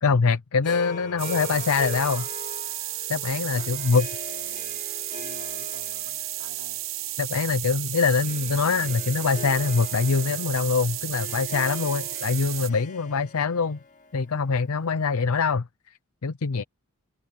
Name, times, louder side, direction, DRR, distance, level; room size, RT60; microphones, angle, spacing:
voice 1, 0.0-2.2 3.1-4.1 7.2-13.8 14.1-16.6, left 5 dB, 80° left, 0.6 m, -24 dB
voice 2, 0.5-2.3 3.5-4.9 5.2-6.8, left 3 dB, 60° left, 5.1 m, -49 dB
Harp, 0.6-15.0, left 2 dB, 35° left, 2.8 m, -42 dB
sound 1, 1.2-12.7, right 16 dB, 65° right, 1.0 m, -33 dB
open air
head